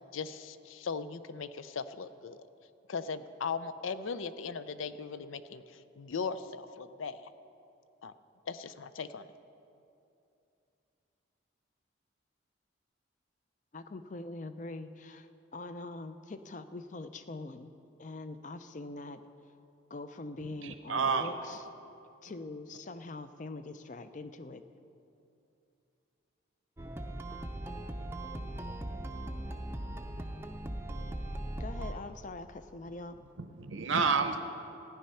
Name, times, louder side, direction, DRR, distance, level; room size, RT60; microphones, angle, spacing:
voice 1, 0.1-2.4 2.9-7.3 8.0-8.1 8.5-9.3, left 5 dB, 85° left, 13 dB, 0.5 m, -38 dB
voice 2, 13.7-17.7 18.0-19.2 19.9-21.6 22.2-24.6 31.6-33.2, left 2 dB, 40° left, 10 dB, 0.5 m, -43 dB
voice 3, 20.6-21.3 33.4-34.4, right 5 dB, 80° right, 7 dB, 0.7 m, -29 dB
sound 1, 26.8-31.9, right 1 dB, 10° right, 0.5 m, -39 dB
14.5 x 10.0 x 5.6 m, 2.7 s
head